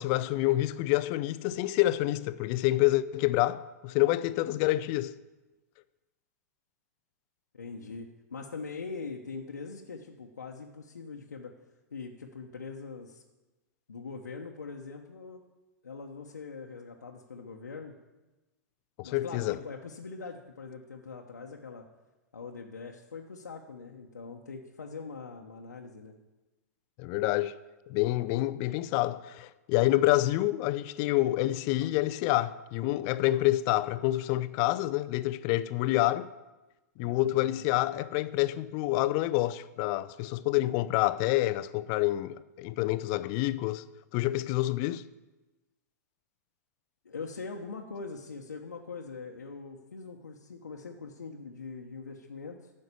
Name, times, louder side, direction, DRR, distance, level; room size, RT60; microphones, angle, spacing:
voice 1, 0.0-5.1 19.0-19.6 27.0-27.6 27.9-36.3 37.0-43.9 44.1-45.0, left 16 dB, 40° left, 0.5 m, -27 dB
voice 2, 7.5-11.5 11.9-13.2 13.9-15.4 15.8-17.9 19.0-21.8 22.3-26.1 37.0-37.6 47.0-52.7, left 4 dB, 85° left, 1.0 m, -42 dB
10.0 x 6.5 x 8.3 m
hypercardioid pair, 110°, 9 cm